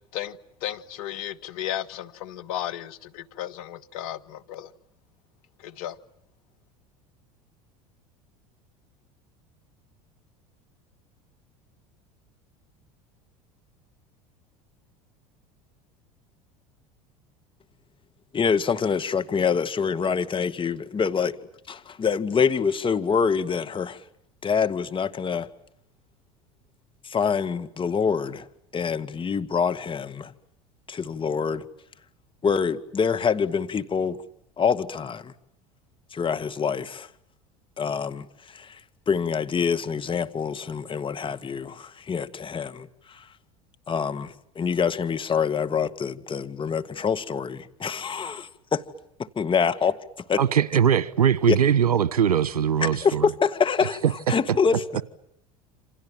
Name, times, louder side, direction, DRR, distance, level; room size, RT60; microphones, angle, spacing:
voice 1, 0.1-4.7 5.6-6.0, left 12 dB, 70° left, 1.5 m, -34 dB
voice 2, 18.3-21.4 21.7-24.0 24.4-25.5 27.0-28.5 28.7-30.3 30.9-31.6 32.4-34.2 34.6-35.3 36.1-37.1 37.8-38.8 39.1-43.3 43.9-48.8 49.2-50.0 50.3-50.4 51.5-51.6 52.8-54.8, left 6 dB, 25° left, 2.0 m, -26 dB
voice 3, 50.4-53.3 54.0-54.3, right 8 dB, 85° right, 1.2 m, -21 dB
28.5 x 26.5 x 7.5 m
hypercardioid pair, 80°, 19 cm